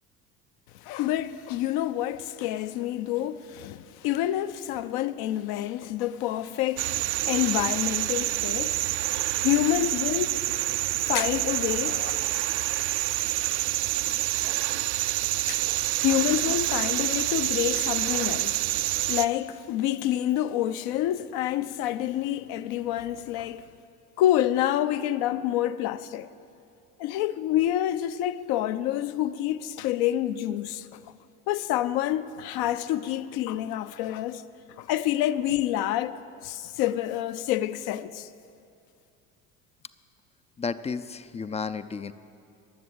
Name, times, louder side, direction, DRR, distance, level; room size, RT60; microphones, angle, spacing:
voice 1, 0.8-8.9 9.2-10.4 10.7-12.2 15.5-15.6 16.0-18.7 19.1-23.7 24.2-26.3 27.0-31.0 31.5-34.4 34.8-38.3, left 12 dB, 55° left, 0.7 m, -28 dB
sound 1, 6.8-19.3, right 16 dB, 60° right, 0.6 m, -27 dB
voice 2, 40.6-42.1, left 5 dB, 15° left, 0.5 m, -32 dB
21.5 x 7.7 x 7.5 m
figure-of-eight pair, 65°, 45 cm